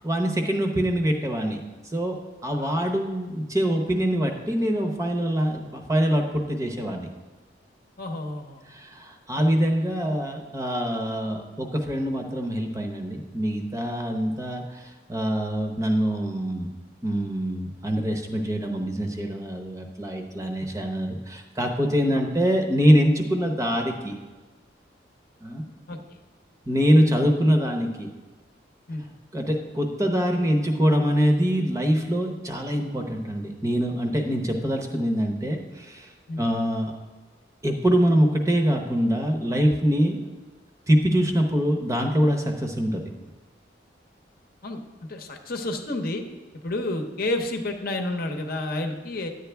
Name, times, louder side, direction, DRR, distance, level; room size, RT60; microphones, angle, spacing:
voice 1, 0.0-1.6 1.8-2.2 2.4-7.1 8.7-16.7 17.0-24.1 25.4-25.6 26.7-28.1 29.3-36.1 36.4-36.9 37.6-40.3 40.9-43.0, equal, 15° right, 3 dB, 0.8 m, -24 dB
voice 2, 8.0-8.6 9.3-9.4 20.6-20.7 22.1-22.2 25.9-26.0 28.9-29.0 36.3-36.4 44.6-44.8 45.1-46.2 46.6-49.3, left 2 dB, 50° left, 4 dB, 0.8 m, -30 dB
11.0 x 8.1 x 3.4 m, 1.2 s
head